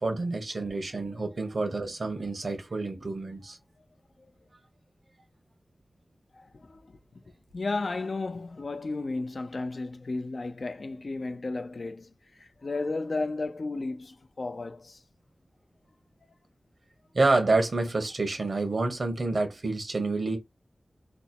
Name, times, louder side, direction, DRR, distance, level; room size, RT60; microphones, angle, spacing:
voice 1, 0.0-3.6 17.1-20.4, right 3 dB, 70° right, 1.2 m, -28 dB
voice 2, 6.3-7.0 7.3-15.0, left 3 dB, 65° left, 0.5 m, -34 dB
3.3 x 2.0 x 4.2 m
wide cardioid pair, 70°, 0 cm